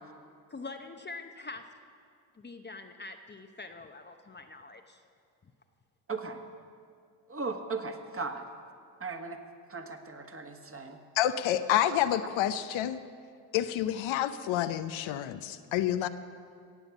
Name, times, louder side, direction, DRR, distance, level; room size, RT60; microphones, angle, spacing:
voice 1, 0.5-1.6 2.4-5.0 5.4-5.5, left 3 dB, 20° left, 5 dB, 0.8 m, -44 dB
voice 2, 6.1-6.4 7.3-8.4 9.0-9.4 9.7-11.0, right 4 dB, 25° right, 5 dB, 1.6 m, -37 dB
voice 3, 11.2-13.0 13.5-16.1, left 11 dB, 65° left, 11 dB, 0.8 m, -28 dB
17.0 x 8.0 x 7.2 m, 2.2 s
supercardioid pair, 65°, 50 cm